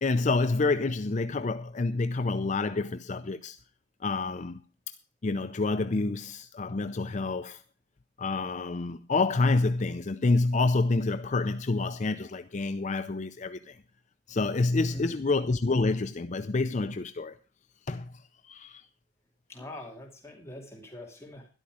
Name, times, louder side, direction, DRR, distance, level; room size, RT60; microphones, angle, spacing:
voice 1, 0.0-3.6 4.0-4.6 4.9-5.0 5.2-7.6 8.2-13.8 14.3-17.3 17.9-18.9, left 3 dB, 40° left, 0.5 m, -28 dB
voice 2, 14.9-15.2 19.5-21.5, left 1 dB, 15° left, 2.6 m, -43 dB
13.0 x 11.5 x 4.9 m
head